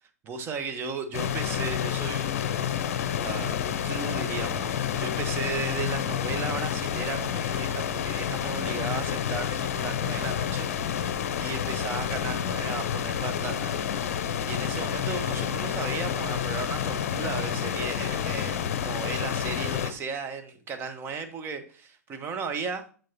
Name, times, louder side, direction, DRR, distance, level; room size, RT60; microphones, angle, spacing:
voice 1, 0.2-11.1 11.4-22.8, right 5 dB, 25° right, 1.1 m, -36 dB
sound 1, 1.1-19.9, left 9 dB, 60° left, 0.7 m, -29 dB
7.6 x 7.4 x 2.9 m
figure-of-eight pair, 100°, 9 cm